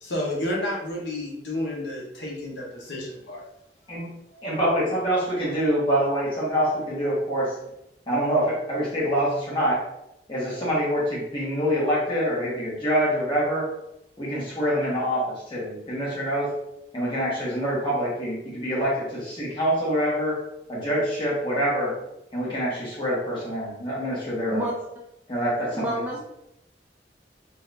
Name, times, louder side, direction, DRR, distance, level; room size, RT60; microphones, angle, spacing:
voice 1, 0.0-3.4 4.3-4.4, left 1 dB, 85° left, -3 dB, 0.9 m, -31 dB
voice 2, 4.4-7.6 8.1-9.8 10.3-13.7 14.2-16.6 16.9-20.4 20.7-22.0 22.3-24.6 25.3-26.0, equal, 25° left, -7 dB, 1.2 m, -25 dB
voice 3, 25.7-26.2, right 1 dB, 10° right, -3 dB, 0.4 m, -28 dB
2.8 x 2.5 x 3.3 m, 0.85 s
head